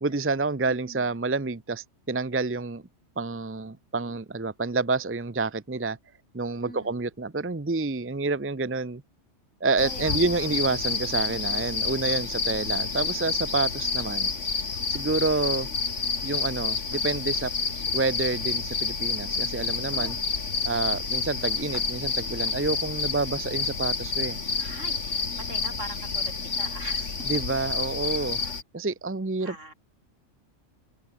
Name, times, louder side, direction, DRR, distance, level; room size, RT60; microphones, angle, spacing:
voice 1, 0.0-2.8 3.2-6.0 6.3-9.0 9.6-14.3 14.9-15.7 16.2-17.5 17.9-20.2 20.6-24.4 27.2-28.4 28.7-29.6, right 3 dB, 15° right, 0.6 m, -28 dB
voice 2, 6.6-7.1 9.8-10.5 15.4-15.8 24.6-27.1 27.6-27.9 29.4-29.7, right 1 dB, 75° right, 8.3 m, -43 dB
sound 1, 9.8-28.6, left 4 dB, 70° left, 2.4 m, -29 dB
open air
omnidirectional pair, 1.3 m